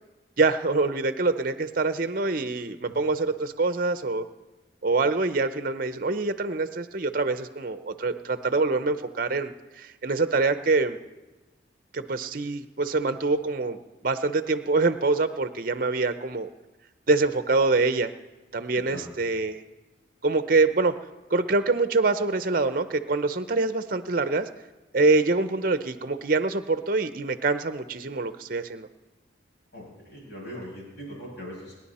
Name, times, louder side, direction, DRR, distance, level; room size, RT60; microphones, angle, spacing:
voice 1, 0.4-4.3 4.8-11.0 11.9-13.8 14.0-16.5 17.1-18.1 18.5-19.6 20.2-20.9 21.3-24.5 24.9-28.9, right 3 dB, 45° right, 11 dB, 0.7 m, -25 dB
voice 2, 18.7-19.1 29.7-31.8, equal, 60° left, -3 dB, 6.9 m, -40 dB
30.0 x 10.5 x 4.3 m, 1.1 s
head